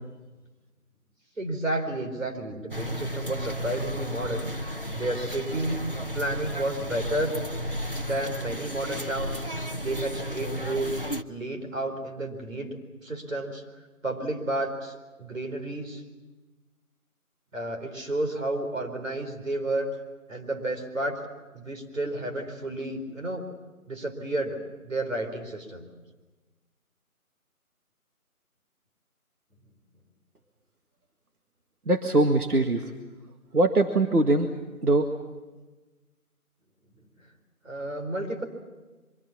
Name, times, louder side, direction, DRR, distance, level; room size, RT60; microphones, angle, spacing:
voice 1, 1.4-5.9 6.1-7.3 8.0-9.4 9.8-12.8 13.0-13.6 14.0-16.0 17.5-19.9 20.3-21.2 21.5-23.4 23.9-25.9 37.6-38.4, right 1 dB, 60° right, 4 dB, 4.5 m, -31 dB
sound 1, 2.7-11.2, equal, 40° left, 0.7 m, -33 dB
voice 2, 31.9-32.8 33.5-34.5 34.8-35.1, right 2 dB, 85° right, 5 dB, 2.0 m, -22 dB
24.0 x 24.0 x 7.3 m, 1.2 s
figure-of-eight pair, 180°, 44 cm